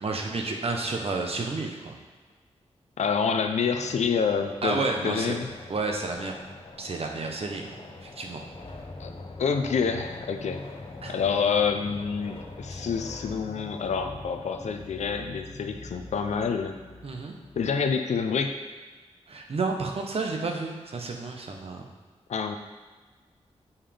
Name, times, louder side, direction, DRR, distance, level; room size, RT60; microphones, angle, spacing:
voice 1, 0.0-1.9 4.6-5.4 5.7-6.3 6.8-7.7 8.0-8.4 11.0-11.2 12.7-12.8 17.0-17.3 19.3-21.8, right 3 dB, 60° right, 2 dB, 1.0 m, -31 dB
voice 2, 3.0-5.5 9.0-9.1 9.4-10.6 11.1-16.8 17.6-18.6 22.3-22.6, left 6 dB, 80° left, 6 dB, 0.6 m, -27 dB
sound 1, 3.7-13.6, left 3 dB, 55° left, 0.9 m, -47 dB
sound 2, 8.5-17.8, left 2 dB, 25° left, 0.6 m, -43 dB
7.2 x 5.6 x 3.4 m, 1.3 s
cardioid pair, 70°, 12 cm